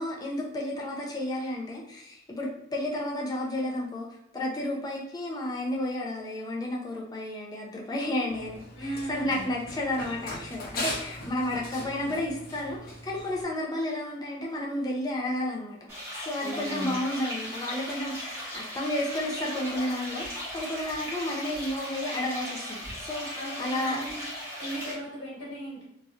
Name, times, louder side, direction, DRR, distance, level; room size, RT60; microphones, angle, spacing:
voice 1, 0.0-15.8 16.1-24.1, left 1 dB, 20° left, -2 dB, 0.6 m, -32 dB
Run, 8.3-13.4, left 2 dB, 50° left, 0.8 m, -39 dB
voice 2, 8.7-9.4 16.4-17.0 23.3-24.2 24.6-25.8, right 1 dB, 75° left, -5 dB, 1.4 m, -37 dB
sound 1, 15.9-24.9, equal, 15° right, 1.1 m, -37 dB
3.0 x 2.7 x 2.4 m, 0.84 s
head